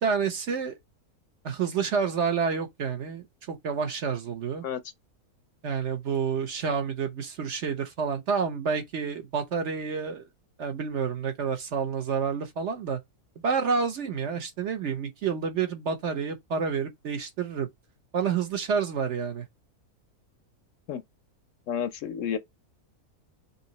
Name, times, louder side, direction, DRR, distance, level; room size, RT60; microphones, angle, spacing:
voice 1, 0.0-0.8 1.4-4.6 5.6-10.2 10.6-13.0 13.4-17.7 18.1-19.5, right 6 dB, 55° right, 1.0 m, -29 dB
voice 2, 21.7-22.4, left 8 dB, 70° left, 0.8 m, -30 dB
5.4 x 2.9 x 2.8 m
omnidirectional pair, 1.6 m